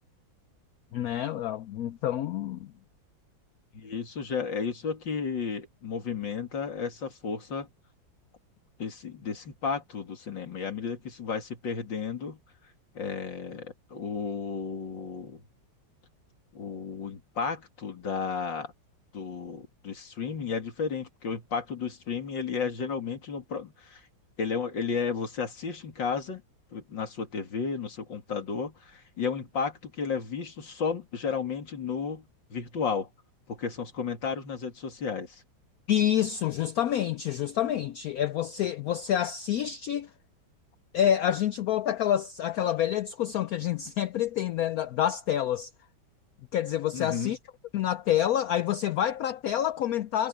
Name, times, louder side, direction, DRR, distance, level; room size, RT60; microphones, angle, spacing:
voice 1, 0.9-2.7 35.9-40.1 40.9-45.7 46.5-47.4 47.7-50.3, left 11 dB, 85° left, 0.8 m, -27 dB
voice 2, 3.7-7.7 8.8-12.4 12.9-15.4 16.5-18.7 19.1-24.0 24.4-26.4 26.7-32.2 32.5-33.1 33.5-35.4 46.9-47.4, left 5 dB, 70° left, 3.1 m, -33 dB
omnidirectional pair, 2.1 m